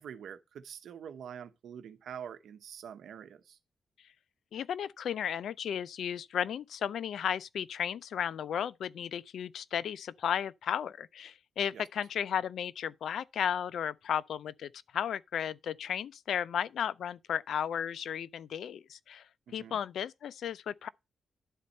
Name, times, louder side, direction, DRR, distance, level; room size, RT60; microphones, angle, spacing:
voice 1, 0.0-3.6 11.7-11.8 19.5-19.8, right 8 dB, 85° right, 1.0 m, -45 dB
voice 2, 4.5-19.2 19.5-20.9, left 8 dB, 80° left, 0.5 m, -34 dB
11.0 x 4.2 x 5.3 m
cardioid pair, 95°, 0 cm